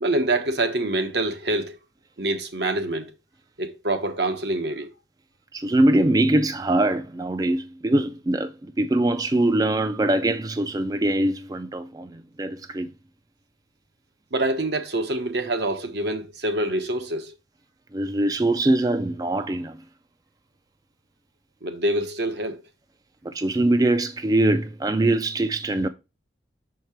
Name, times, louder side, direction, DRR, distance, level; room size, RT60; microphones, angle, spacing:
voice 1, 0.0-1.8 2.2-3.1 3.6-4.9 14.3-17.3 21.6-22.6, right 1 dB, 70° right, 1.2 m, -26 dB
voice 2, 5.5-12.9 17.9-19.8 23.2-25.9, right 1 dB, 20° right, 0.3 m, -22 dB
6.6 x 4.5 x 4.3 m
head